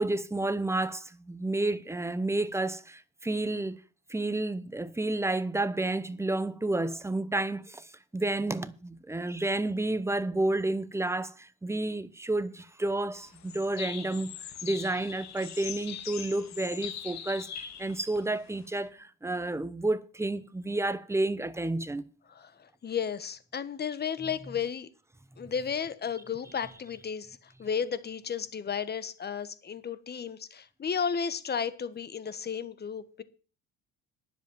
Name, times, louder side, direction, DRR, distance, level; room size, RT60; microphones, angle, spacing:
voice 1, 0.0-3.8 4.1-14.3 14.6-22.0 25.4-25.5, right 2 dB, 10° right, 0.9 m, -30 dB
sound 1, 13.2-18.9, left 9 dB, 55° left, 2.1 m, -41 dB
voice 2, 22.3-24.9 25.4-33.2, left 7 dB, 30° left, 1.3 m, -33 dB
10.5 x 7.6 x 7.2 m
cardioid pair, 105°, 32 cm